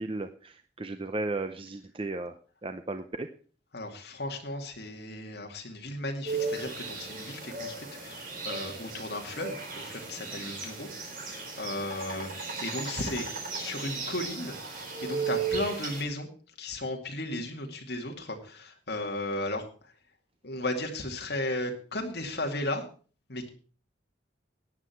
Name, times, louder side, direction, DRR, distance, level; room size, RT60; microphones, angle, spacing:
voice 1, 0.0-2.3 2.6-3.3, right 2 dB, 30° right, 8 dB, 0.6 m, -35 dB
voice 2, 3.7-10.9 11.2-13.2 13.5-16.3 16.6-19.6 20.4-22.8 23.3-23.5, left 1 dB, 60° left, 3 dB, 2.4 m, -35 dB
sound 1, 6.3-16.0, right 4 dB, 45° right, 3.9 m, -36 dB
14.5 x 9.8 x 4.5 m, 0.40 s
head